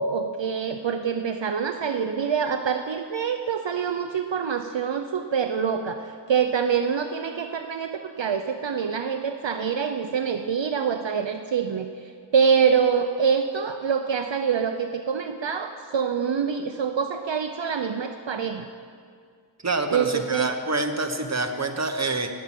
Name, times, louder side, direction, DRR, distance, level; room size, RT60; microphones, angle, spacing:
voice 1, 0.0-18.7 19.9-20.5, right 6 dB, 70° right, 6 dB, 0.6 m, -25 dB
voice 2, 19.6-22.3, right 3 dB, 35° right, 6 dB, 1.1 m, -26 dB
18.0 x 7.4 x 5.9 m, 2.1 s
wide cardioid pair, 45°, 47 cm